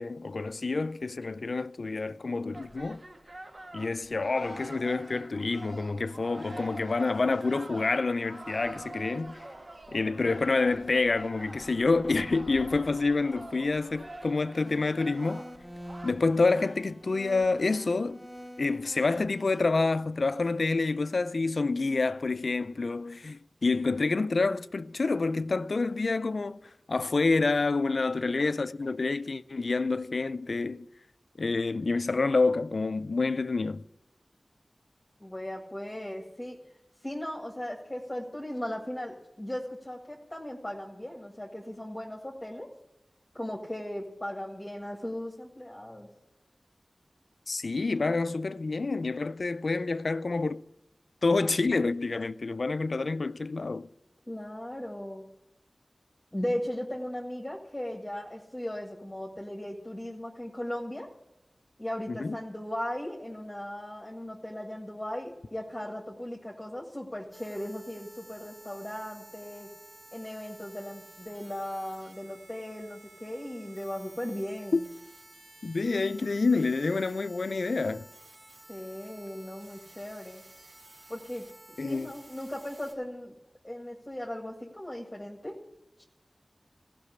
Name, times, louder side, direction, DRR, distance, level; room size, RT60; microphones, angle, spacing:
voice 1, 0.0-3.0 3.7-9.4 9.9-15.4 16.0-18.2 18.6-30.9 31.4-33.8 47.5-50.6 51.2-53.9 62.1-62.4 74.7-74.8 75.6-78.0 81.8-82.1, left 3 dB, 75° left, 0.4 m, -28 dB
sound 1, 2.5-16.1, right 1 dB, 50° right, 1.3 m, -45 dB
sound 2, 14.6-19.6, equal, 25° right, 2.4 m, -46 dB
voice 2, 35.2-36.6 37.0-42.7 43.3-46.1 54.3-55.2 56.3-61.1 61.8-69.7 70.1-74.8 78.7-80.4 81.1-83.3 83.6-85.5, left 1 dB, 15° left, 1.9 m, -37 dB
sound 3, 67.3-82.9, right 1 dB, 80° right, 4.6 m, -53 dB
15.5 x 6.0 x 9.6 m
wide cardioid pair, 50°, 0 cm